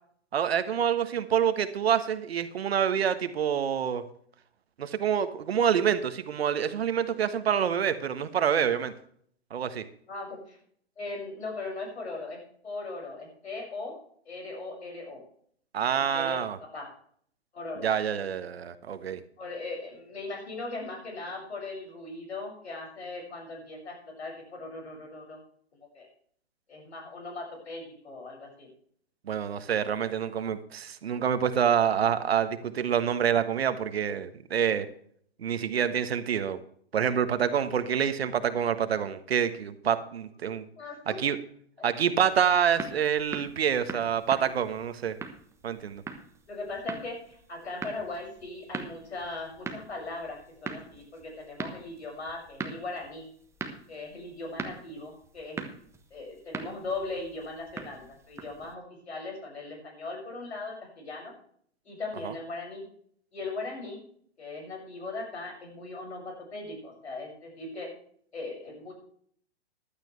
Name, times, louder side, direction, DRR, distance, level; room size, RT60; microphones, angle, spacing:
voice 1, 0.3-4.0 4.8-8.9 9.5-9.8 15.7-16.6 17.8-19.2 29.3-34.9 35.4-36.6 36.9-40.6 41.1-41.4 41.8-45.2 45.6-46.0 62.2-62.3, right 8 dB, 65° right, 11 dB, 1.4 m, -27 dB
voice 2, 10.1-10.6 11.0-14.0 14.2-15.2 15.9-16.9 17.5-17.9 19.4-25.4 25.7-26.1 26.7-28.7 40.7-41.2 41.8-41.9 46.5-53.3 53.9-55.6 56.1-61.3 61.8-62.8 63.3-64.0 64.4-67.9 68.3-68.9, left 3 dB, 75° left, 1 dB, 6.7 m, -39 dB
sound 1, 42.3-58.7, right 4 dB, 10° right, 1.2 m, -42 dB
15.0 x 12.0 x 3.3 m, 0.62 s
figure-of-eight pair, 120°, 33 cm